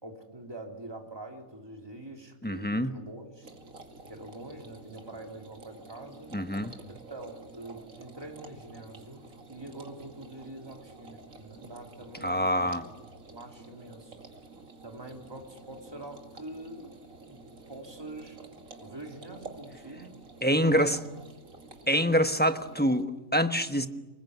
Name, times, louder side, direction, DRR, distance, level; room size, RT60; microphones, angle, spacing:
voice 1, 0.0-3.5 4.1-6.3 6.9-14.2 14.8-16.9 17.3-18.4 18.8-20.2 20.5-21.0, right 2 dB, 20° right, 2 dB, 3.3 m, -45 dB
voice 2, 2.4-2.9 6.3-6.7 12.2-12.8 20.4-21.0 21.9-23.9, equal, 10° left, 8 dB, 1.1 m, -25 dB
sound 1, 3.4-23.0, right 3 dB, 80° right, 2.7 m, -50 dB
29.5 x 20.5 x 9.5 m, 1.1 s
omnidirectional pair, 1.4 m